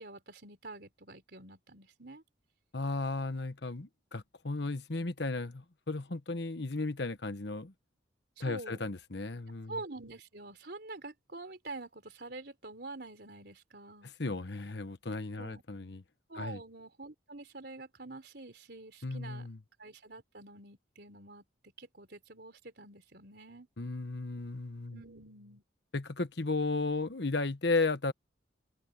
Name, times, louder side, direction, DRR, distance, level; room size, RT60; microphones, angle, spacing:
voice 1, 0.0-2.2 8.4-8.8 9.7-14.1 15.4-15.6 16.3-19.5 19.8-21.4 21.8-23.7 24.9-25.6, right 2 dB, 60° right, 4.2 m, -46 dB
voice 2, 2.7-7.7 8.4-9.8 14.0-16.0 16.4-16.6 19.0-19.6 23.8-25.0 25.9-28.1, left 3 dB, 65° left, 1.2 m, -34 dB
head